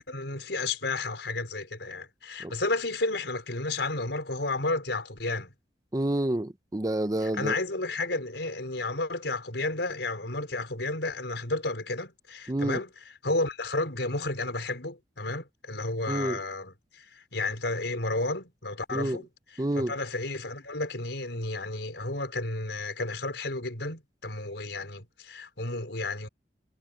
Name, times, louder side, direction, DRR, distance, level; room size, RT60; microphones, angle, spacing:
voice 1, 0.1-5.5 7.2-26.3, left 2 dB, 85° left, 4.9 m, -32 dB
voice 2, 5.9-7.6 12.5-12.8 16.1-16.4 18.9-19.2 19.6-19.9, right 1 dB, 20° right, 0.6 m, -28 dB
head